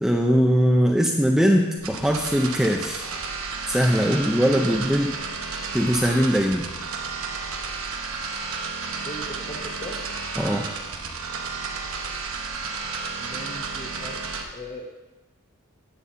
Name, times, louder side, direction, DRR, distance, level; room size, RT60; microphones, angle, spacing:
voice 1, 0.0-3.1 3.7-5.1 5.7-6.6 10.4-10.7, equal, ahead, 1 dB, 0.4 m, -21 dB
sound 1, 1.8-14.4, right 4 dB, 70° right, 1.0 m, -32 dB
voice 2, 9.0-10.0 13.2-14.2 14.5-15.1, equal, 25° left, -4 dB, 0.9 m, -39 dB
10.0 x 4.2 x 6.7 m, 1.1 s
head